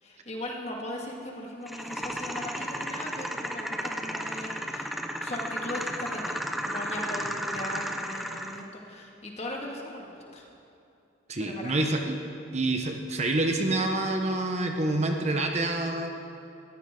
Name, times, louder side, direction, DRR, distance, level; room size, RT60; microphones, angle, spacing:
voice 1, 0.0-4.9 5.2-10.5 11.4-11.9, left 1 dB, 35° left, 0 dB, 2.1 m, -38 dB
sound 1, 1.7-8.7, equal, ahead, 0.7 m, -34 dB
voice 2, 11.3-12.2 12.5-16.1, right 2 dB, 35° right, 4 dB, 1.1 m, -27 dB
21.0 x 14.5 x 3.8 m, 2.7 s
head